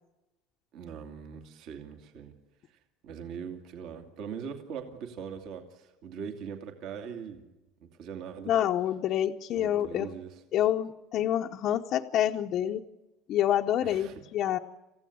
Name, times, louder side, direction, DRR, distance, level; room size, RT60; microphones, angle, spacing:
voice 1, 0.7-2.3 2.7-2.8 3.0-7.5 7.8-8.5 9.6-10.4 13.8-14.2, right 7 dB, 50° right, 5 dB, 2.5 m, -41 dB
voice 2, 8.5-10.1 10.5-12.8 13.3-14.6, left 11 dB, 40° left, 1 dB, 0.8 m, -27 dB
28.0 x 15.5 x 8.6 m, 1.0 s
cardioid pair, 170°, 0 cm